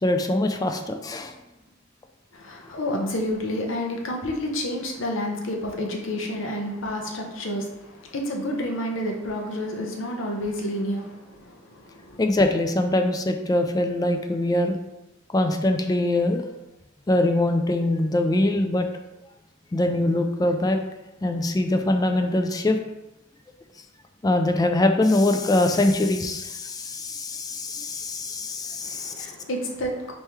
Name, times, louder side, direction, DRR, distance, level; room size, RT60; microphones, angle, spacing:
voice 1, 0.0-1.3 12.2-14.8 15.3-16.4 17.1-18.9 19.7-20.8 21.2-22.8 24.2-29.3, left 1 dB, 20° left, 5 dB, 0.3 m, -23 dB
voice 2, 2.3-12.2 28.8-30.1, left 1 dB, 80° left, 1 dB, 0.8 m, -30 dB
4.2 x 3.1 x 3.5 m, 0.95 s
head